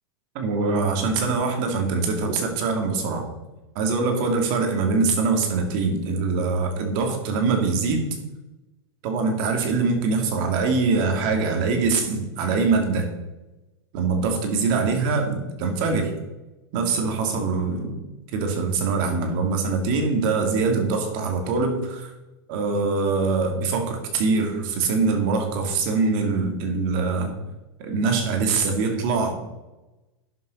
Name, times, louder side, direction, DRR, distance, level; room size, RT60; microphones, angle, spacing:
voice 1, 0.3-3.2 3.8-8.1 9.0-13.1 13.9-16.1 16.7-18.0 18.3-22.1 22.5-27.3 27.8-29.3, right 4 dB, 50° right, 4 dB, 2.4 m, -23 dB
11.0 x 6.7 x 5.3 m, 1.0 s
hypercardioid pair, 135°, 14 cm